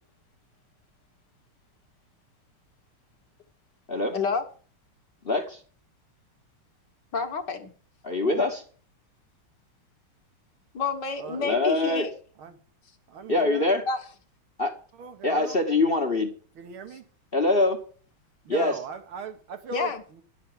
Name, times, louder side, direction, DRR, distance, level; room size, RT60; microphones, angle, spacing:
voice 1, 4.1-4.4 7.1-7.7 8.3-8.4 10.7-12.1 13.9-14.0 19.7-20.0, left 5 dB, 55° left, 1.9 m, -29 dB
voice 2, 5.2-5.6 8.0-8.6 11.4-12.1 13.3-13.8 14.6-14.7 15.2-16.3 17.3-17.8 18.5-18.8, left 2 dB, 35° left, 1.2 m, -24 dB
voice 3, 11.2-11.6 12.4-12.6 13.1-13.7 14.9-15.6 16.6-17.1 18.4-20.2, right 6 dB, 75° right, 2.3 m, -39 dB
11.0 x 7.7 x 7.5 m
omnidirectional pair, 2.3 m